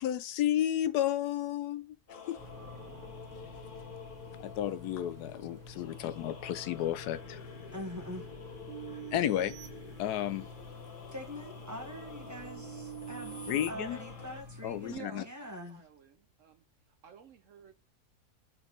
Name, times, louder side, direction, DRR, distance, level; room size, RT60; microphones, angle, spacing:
voice 1, 0.0-2.4 4.4-7.5 9.1-9.5 10.0-10.5 13.5-14.0 14.6-15.2, left 12 dB, 80° left, 1.1 m, -32 dB
sound 1, 2.1-14.4, left 5 dB, 40° left, 0.9 m, -50 dB
sound 2, 2.4-14.9, left 3 dB, 10° left, 1.8 m, -49 dB
voice 2, 7.7-8.3 8.9-9.0 11.1-15.8, equal, 15° right, 1.0 m, -44 dB
sound 3, 8.7-10.6 11.2-13.7, right 8 dB, 85° right, 2.3 m, -46 dB
voice 3, 14.9-16.6 17.0-17.7, right 8 dB, 60° right, 0.9 m, -50 dB
4.5 x 4.0 x 5.2 m
omnidirectional pair, 1.7 m